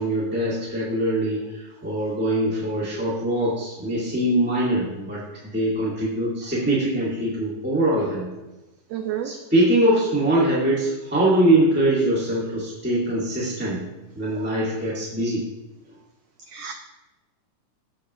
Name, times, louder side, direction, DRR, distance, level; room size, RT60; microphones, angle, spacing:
voice 1, 0.0-5.2 5.5-8.3 9.2-13.8 14.1-15.4, right 1 dB, 5° right, -7 dB, 1.1 m, -22 dB
voice 2, 8.9-9.3 16.5-16.7, right 10 dB, 85° right, 6 dB, 1.4 m, -30 dB
14.5 x 6.2 x 3.0 m, 1.1 s
omnidirectional pair, 3.5 m